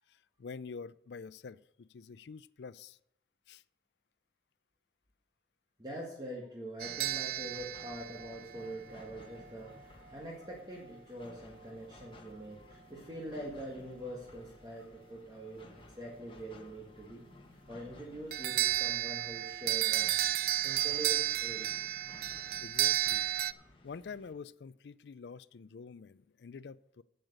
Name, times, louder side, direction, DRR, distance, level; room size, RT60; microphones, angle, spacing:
voice 1, 0.1-3.0 3.5-3.6 22.6-23.3 23.8-27.0, left 5 dB, 75° left, 18 dB, 0.4 m, -47 dB
voice 2, 5.8-17.3 17.7-20.1 20.6-21.7, right 1 dB, 20° right, -3 dB, 1.7 m, -44 dB
sound 1, 6.8-24.3, left 2 dB, 30° left, 1.3 m, -57 dB
sound 2, 6.8-9.1 18.3-23.5, right 14 dB, 50° right, 0.3 m, -32 dB
8.8 x 8.0 x 6.6 m, 0.77 s
head